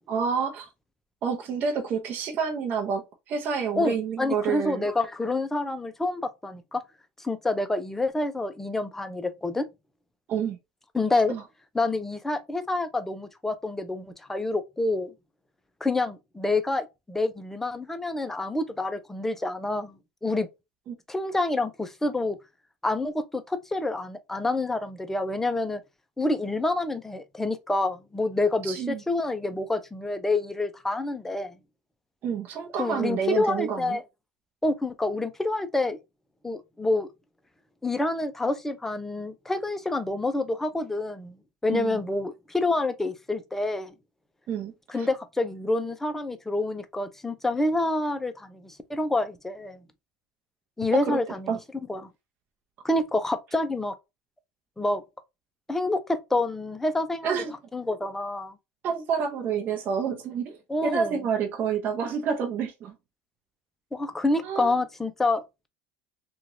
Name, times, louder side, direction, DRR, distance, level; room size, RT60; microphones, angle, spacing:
voice 1, 0.1-0.7 1.2-4.9 10.3-10.6 11.3-11.4 20.9-21.0 28.6-29.0 32.2-34.0 41.7-42.0 44.5-45.1 50.9-51.2 51.5-51.6 57.2-57.5 58.8-62.9 64.4-64.7, right 6 dB, 45° right, 0.8 m, -29 dB
voice 2, 3.8-6.8 7.2-9.7 10.9-11.4 11.7-15.1 15.8-20.5 21.1-22.4 22.8-25.8 26.2-31.5 32.8-34.0 34.6-36.0 36.4-37.1 37.8-41.3 41.6-43.9 44.9-49.8 50.8-51.5 51.9-52.0 52.8-53.9 54.8-55.0 55.7-57.4 57.7-58.6 60.7-61.2 63.9-65.4, left 2 dB, 10° left, 0.5 m, -27 dB
3.0 x 2.4 x 2.6 m
supercardioid pair, 105°, 4 cm